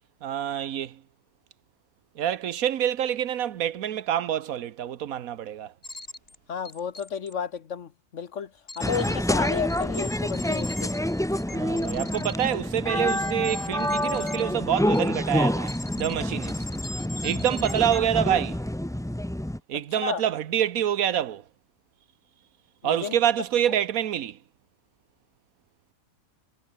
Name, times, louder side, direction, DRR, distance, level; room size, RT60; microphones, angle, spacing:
voice 1, 0.2-1.0 2.2-5.7 11.5-16.6 17.2-18.6 19.7-21.4 22.8-24.4, right 10 dB, 75° right, 1.3 m, -27 dB
sound 1, 5.8-6.4 6.7-7.3 8.7-9.1 9.4-14.4 14.9-15.3 15.7-16.1 16.4-18.0, left 2 dB, 40° left, 3.9 m, -40 dB
voice 2, 6.5-11.0 20.0-20.2 22.8-23.2, left 7 dB, 60° left, 1.4 m, -32 dB
sound 2, 8.8-19.6, left 1 dB, 5° left, 0.4 m, -27 dB
omnidirectional pair, 1.5 m